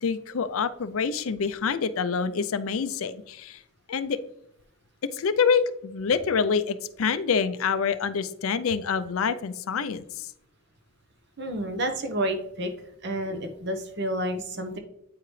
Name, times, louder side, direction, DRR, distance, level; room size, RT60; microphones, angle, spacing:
voice 1, 0.0-3.6 3.9-4.2 5.1-10.3, left 6 dB, 75° left, 13 dB, 0.5 m, -26 dB
voice 2, 11.4-12.7 13.0-14.8, right 1 dB, 50° right, 6 dB, 1.0 m, -30 dB
8.8 x 4.7 x 3.2 m, 0.78 s
head